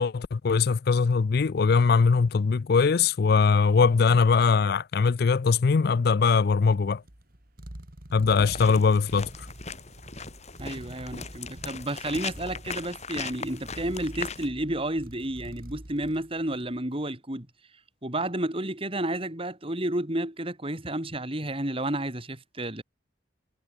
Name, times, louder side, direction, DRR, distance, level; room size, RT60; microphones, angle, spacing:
voice 1, 0.0-7.0 8.1-9.5, left 5 dB, 55° left, 0.4 m, -21 dB
sound 1, 6.3-16.9, right 1 dB, 50° right, 3.0 m, -46 dB
sound 2, 8.5-14.5, left 5 dB, 35° left, 7.5 m, -39 dB
voice 2, 10.6-17.5 18.0-22.8, right 1 dB, 30° right, 3.4 m, -31 dB
head